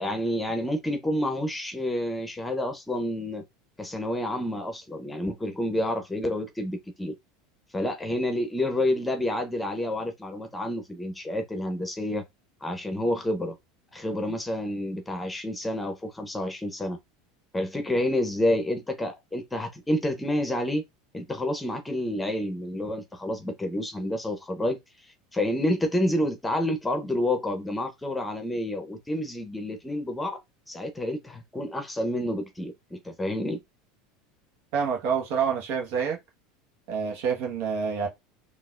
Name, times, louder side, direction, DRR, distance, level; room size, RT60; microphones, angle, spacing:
voice 1, 0.0-3.4 3.8-7.1 7.7-12.2 12.6-13.5 13.9-17.0 17.5-20.8 21.1-24.8 25.3-30.4 30.7-33.6, left 1 dB, 10° left, 0.8 m, -29 dB
voice 2, 34.7-36.2 36.9-38.1, right 6 dB, 65° right, 1.2 m, -27 dB
3.9 x 2.5 x 2.5 m
hypercardioid pair, 85°, 0 cm